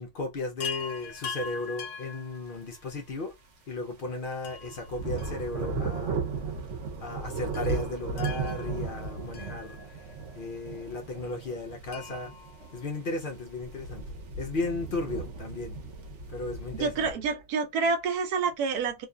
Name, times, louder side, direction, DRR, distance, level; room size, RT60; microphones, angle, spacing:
voice 1, 0.0-3.3 3.7-6.2 7.0-10.1 10.3-12.3 12.7-14.0 14.4-15.8 16.3-17.1, left 2 dB, 65° left, 0.5 m, -35 dB
Chime, 0.6-3.0 4.4-6.0 6.2-6.3 7.5-10.2 11.9-13.5 15.1-15.2 15.4-15.5, left 5 dB, 85° left, 1.2 m, -42 dB
sound 1, 3.8-4.1 4.5-17.1, right 4 dB, 55° right, 1.0 m, -36 dB
voice 2, 16.8-19.1, right 4 dB, 85° right, 1.2 m, -28 dB
2.8 x 2.4 x 2.3 m
omnidirectional pair, 1.6 m